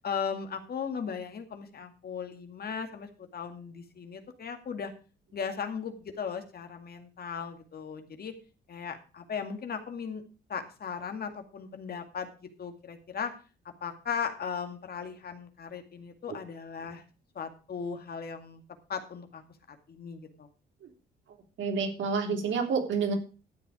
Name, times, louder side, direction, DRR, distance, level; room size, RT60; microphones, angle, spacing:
voice 1, 0.0-4.9 5.3-8.3 8.7-10.2 10.5-12.3 12.6-13.3 13.8-17.0 17.4-18.6 18.9-19.4 19.7-20.5, left 6 dB, 50° left, 6 dB, 2.2 m, -37 dB
voice 2, 21.6-23.1, right 5 dB, 70° right, 3 dB, 3.3 m, -29 dB
13.0 x 8.0 x 4.9 m, 0.35 s
cardioid pair, 90°, 20 cm